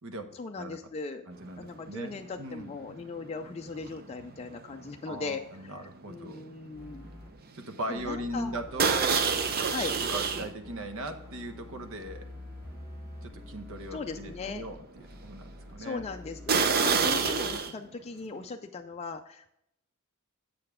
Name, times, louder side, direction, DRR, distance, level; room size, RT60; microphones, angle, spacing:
voice 1, 0.3-1.3 1.6-5.8 6.1-7.1 7.9-8.6 9.7-10.0 13.9-14.6 15.8-19.5, left 4 dB, 30° left, 4 dB, 0.4 m, -38 dB
voice 2, 1.3-2.7 5.0-6.4 7.5-9.2 10.1-12.2 13.2-16.1 16.8-17.3, right 1 dB, 65° right, 7 dB, 1.0 m, -39 dB
sound 1, 1.6-1.9 2.1-6.8 7.0-7.3 7.7-7.8 8.8-10.5 11.1-11.2 11.8-11.9 12.4-12.5 16.5-17.7, right 5 dB, 45° right, 0.6 m, -28 dB
sound 2, 6.7-7.3 8.0-17.6, left 1 dB, 10° right, 2.9 m, -47 dB
7.6 x 6.8 x 3.6 m, 0.79 s
head